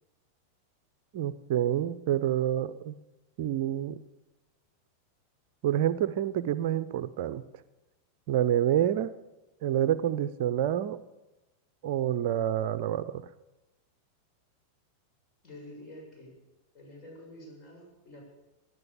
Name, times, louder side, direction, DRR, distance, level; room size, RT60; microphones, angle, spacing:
voice 1, 1.1-2.9 3.4-4.0 5.6-7.4 8.3-9.1 9.6-11.0 11.8-13.2, right 11 dB, 50° right, 13 dB, 0.6 m, -28 dB
voice 2, 15.4-16.3 16.7-18.2, left 1 dB, 30° left, 0 dB, 7.2 m, -48 dB
18.5 x 11.0 x 7.0 m, 1.0 s
figure-of-eight pair, 90°, 0 cm